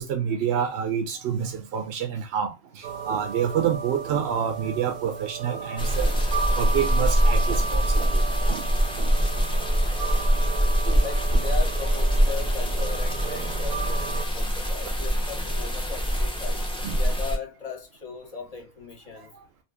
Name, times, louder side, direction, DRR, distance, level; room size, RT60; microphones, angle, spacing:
voice 1, 0.0-6.1 6.6-8.2 8.5-8.6 9.0-9.1 10.4-10.5 10.9-11.0 16.8-17.0, right 8 dB, 85° right, 0.8 m, -28 dB
sound 1, 2.8-14.3, right 5 dB, 55° right, 0.6 m, -34 dB
sound 2, 5.8-17.4, equal, 5° left, 0.4 m, -24 dB
voice 2, 9.2-9.6 11.0-19.3, left 5 dB, 40° left, 0.7 m, -38 dB
2.6 x 2.4 x 3.4 m
omnidirectional pair, 1.0 m